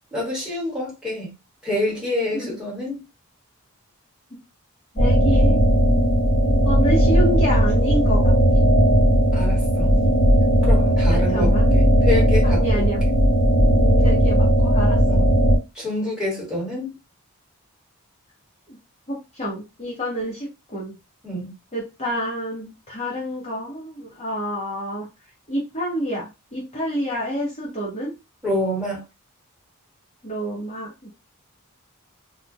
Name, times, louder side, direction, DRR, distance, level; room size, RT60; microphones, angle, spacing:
voice 1, 0.1-1.3 1.6-3.0 9.3-9.9 10.6-12.8 15.0-15.3 15.7-16.9 21.2-21.5 28.4-29.0, left 1 dB, 5° right, 1.3 m, -27 dB
voice 2, 4.9-5.6 6.6-8.3 10.0-10.1 11.1-11.7 12.4-13.0 14.0-15.2 18.7-18.8 19.1-20.9 21.7-25.1 25.5-28.1 30.2-31.1, equal, 30° left, 0.8 m, -28 dB
sound 1, 5.0-15.6, equal, 60° left, 0.9 m, -17 dB
2.3 x 2.1 x 2.6 m
head